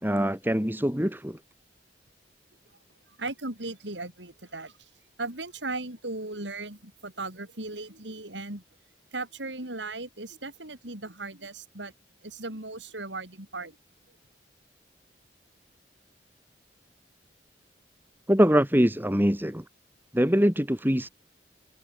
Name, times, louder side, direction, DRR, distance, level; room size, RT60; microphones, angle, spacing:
voice 1, 0.0-1.4 18.3-19.6 20.1-21.1, equal, 10° right, 4.1 m, -23 dB
voice 2, 3.2-4.7 5.2-8.6 9.1-11.9 12.2-13.8, right 2 dB, 85° right, 5.7 m, -37 dB
head